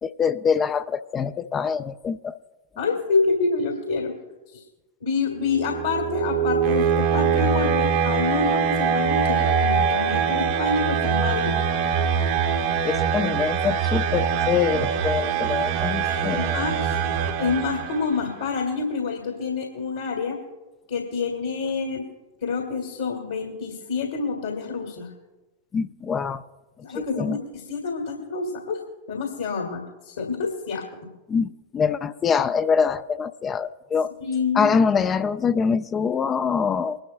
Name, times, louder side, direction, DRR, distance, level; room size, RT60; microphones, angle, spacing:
voice 1, 0.0-2.4 12.8-16.6 25.7-26.4 26.9-27.4 31.3-34.1 34.6-37.0, left 6 dB, 25° left, 12 dB, 0.4 m, -24 dB
voice 2, 2.8-4.1 4.5-4.6 5.0-11.6 16.0-17.0 17.4-20.4 20.9-22.1 22.4-25.1 26.8-28.8 29.1-30.9 34.2-34.7, left 4 dB, 65° left, 1 dB, 2.0 m, -27 dB
sound 1, 5.4-18.2, right 7 dB, 50° right, 1.0 m, -23 dB
23.0 x 11.5 x 2.2 m, 1.1 s
figure-of-eight pair, 90°, 0 cm